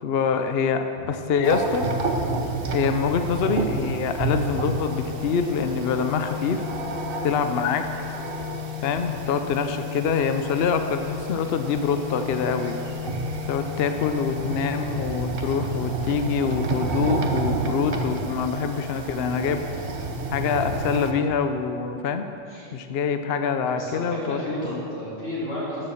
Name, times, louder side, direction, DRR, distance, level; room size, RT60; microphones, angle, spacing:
voice 1, 0.0-1.9 2.7-6.6 7.2-7.9 8.8-12.8 13.5-19.6 20.3-22.3 22.7-24.4 24.7-24.8, left 6 dB, 60° left, 7 dB, 0.8 m, -25 dB
sound 1, 1.4-21.1, right 3 dB, 50° right, 1.1 m, -30 dB
Organ, 4.6-15.5, left 10 dB, 80° right, 1.4 m, -36 dB
voice 2, 23.7-25.9, left 1 dB, 80° left, -9 dB, 3.5 m, -32 dB
13.0 x 7.0 x 7.0 m, 2.6 s
omnidirectional pair, 1.3 m